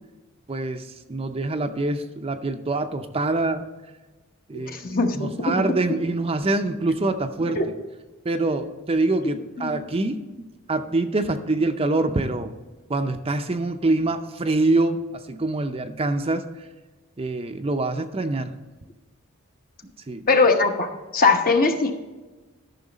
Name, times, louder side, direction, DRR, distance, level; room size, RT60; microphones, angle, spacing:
voice 1, 0.5-3.7 4.5-7.6 8.2-10.2 10.7-12.5 12.9-16.5 17.2-18.5 20.1-20.3, right 2 dB, 25° right, 7 dB, 0.6 m, -25 dB
voice 2, 4.5-5.6 7.6-7.7 9.2-9.3 9.6-9.8 20.3-21.9, left 3 dB, 45° left, 5 dB, 1.0 m, -21 dB
13.0 x 5.8 x 4.1 m, 1.2 s
head